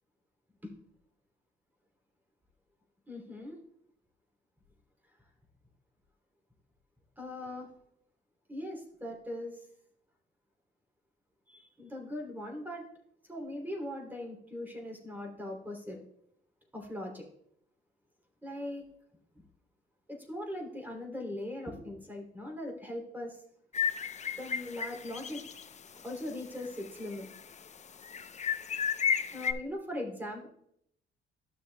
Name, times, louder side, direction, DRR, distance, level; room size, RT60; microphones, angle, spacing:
voice 1, 3.1-3.6 7.2-7.7 8.5-9.7 11.5-12.8 13.3-16.0 16.7-17.2 18.4-18.8 20.1-23.4 24.4-25.4 26.0-27.3 29.3-30.5, left 1 dB, 10° right, 0 dB, 2.9 m, -40 dB
sound 1, 23.7-25.6 26.0-26.1 26.6-27.4 28.0-29.5, left 7 dB, 35° left, 0.6 m, -33 dB
13.0 x 6.4 x 2.2 m, 0.72 s
cardioid pair, 90°, 20 cm